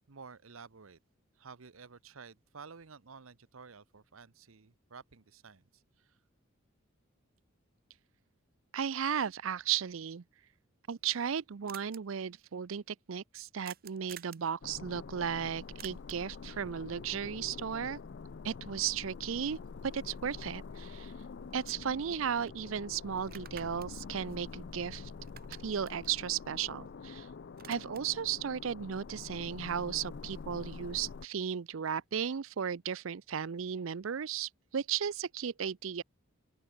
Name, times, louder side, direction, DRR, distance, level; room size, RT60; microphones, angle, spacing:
voice 1, 0.1-1.0 1.4-6.2, right 5 dB, 90° right, 0.9 m, -52 dB
voice 2, 8.7-10.2 10.9-18.0 18.4-21.1 21.5-25.1 25.6-27.3 27.7-36.0, right 8 dB, 75° right, 0.5 m, -35 dB
sound 1, 10.7-10.8 11.0-11.1 11.3-11.4 11.7-12.0 13.6-14.5 15.8-16.3 20.5-20.6 21.0-22.2 22.5-22.6 23.2-25.0 25.2-27.1 27.4-28.2, right 10 dB, 45° right, 1.3 m, -52 dB
sound 2, 14.6-31.2, left 5 dB, 55° left, 0.5 m, -46 dB
open air
head